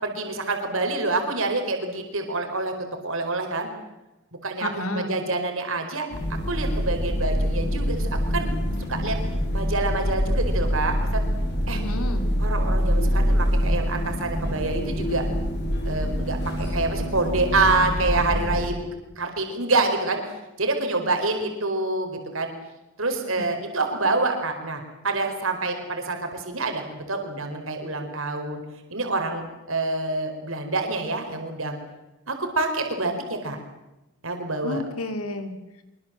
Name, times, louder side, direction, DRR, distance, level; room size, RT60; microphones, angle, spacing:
voice 1, 0.0-2.7 3.0-3.7 4.4-6.1 6.4-8.5 8.9-9.2 9.5-11.2 11.7-11.8 12.4-15.2 15.8-18.8 19.2-22.5 23.0-28.6 28.9-31.8 32.3-33.6 34.2-34.8, right 3 dB, 65° right, 4 dB, 4.6 m, -27 dB
voice 2, 4.6-5.1 11.7-12.3 23.4-23.5 34.6-35.5, left 2 dB, 80° left, 9 dB, 3.2 m, -31 dB
sound 1, 6.1-18.7, equal, 50° left, 5.4 m, -25 dB
24.5 x 23.0 x 7.6 m, 1.0 s
head